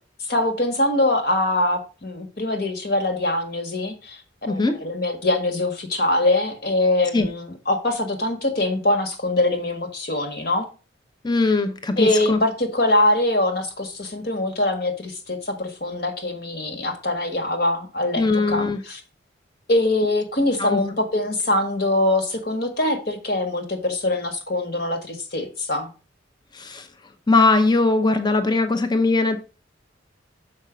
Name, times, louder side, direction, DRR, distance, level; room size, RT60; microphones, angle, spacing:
voice 1, 0.3-4.2 4.5-10.7 12.0-19.0 19.7-25.9, left 1 dB, 55° left, 1.5 m, -23 dB
voice 2, 4.5-4.8 7.1-7.3 11.2-12.4 18.2-18.8 20.6-20.8 26.5-26.9 27.3-29.4, left 3 dB, 25° left, 0.7 m, -20 dB
6.6 x 5.3 x 5.0 m
head